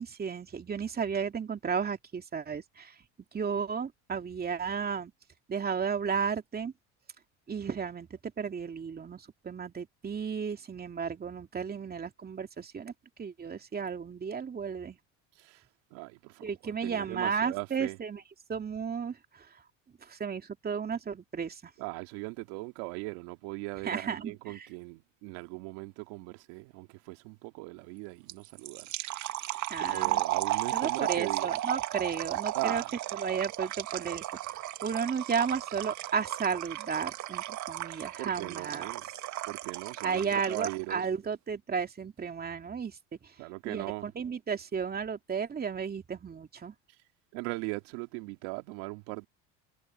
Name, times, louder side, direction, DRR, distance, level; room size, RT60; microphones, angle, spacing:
voice 1, 0.0-3.0 3.3-5.1 5.5-6.7 7.5-12.9 13.2-15.0 16.4-18.2 18.5-19.6 20.0-21.7 23.8-24.7 29.7-30.2 30.7-32.8 33.2-38.9 40.0-43.0 43.2-43.3 43.6-46.7, right 6 dB, 25° right, 2.6 m, -33 dB
voice 2, 15.9-18.0 21.8-28.9 29.4-31.5 32.5-32.9 38.2-39.0 39.4-41.1 43.4-44.1 47.3-49.3, right 25 dB, 75° right, 2.4 m, -39 dB
sound 1, 28.3-40.9, right 14 dB, 55° right, 1.8 m, -35 dB
supercardioid pair, 95°, 35 cm